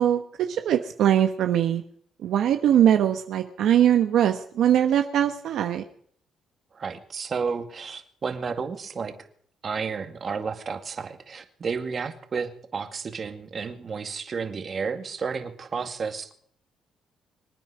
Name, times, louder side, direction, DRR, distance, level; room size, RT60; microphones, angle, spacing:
voice 1, 0.0-1.8 2.2-5.8, right 10 dB, 80° right, 7 dB, 1.1 m, -21 dB
voice 2, 6.7-9.1 9.6-16.3, right 5 dB, 45° right, 7 dB, 2.2 m, -32 dB
25.5 x 9.4 x 5.0 m, 0.62 s
cardioid pair, 90°, 0 cm